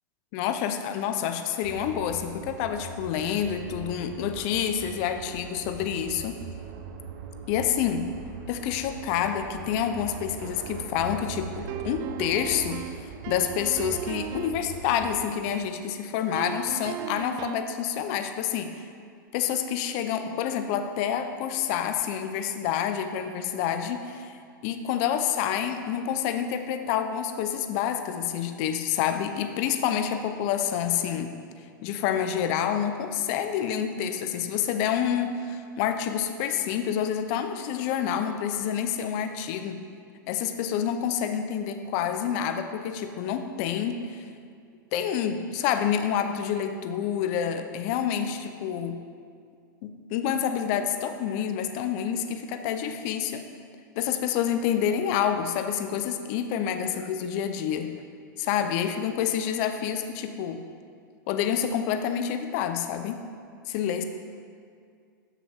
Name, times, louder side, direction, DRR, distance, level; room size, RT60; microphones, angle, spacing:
voice 1, 0.3-6.4 7.5-8.1 8.5-12.8 13.3-18.8 19.3-24.4 24.6-31.3 31.8-39.8 40.3-44.2 44.9-49.0 49.8-53.5 54.0-57.9 58.4-60.6 61.3-63.2 63.7-64.0, left 9 dB, 50° left, 8 dB, 0.8 m, -28 dB
sound 1, 1.6-15.3, right 5 dB, 50° right, 0.8 m, -41 dB
sound 2, 11.7-14.7 16.3-17.8, right 14 dB, 35° right, 0.3 m, -37 dB
13.0 x 6.0 x 3.6 m, 2.2 s
hypercardioid pair, 115°, 11 cm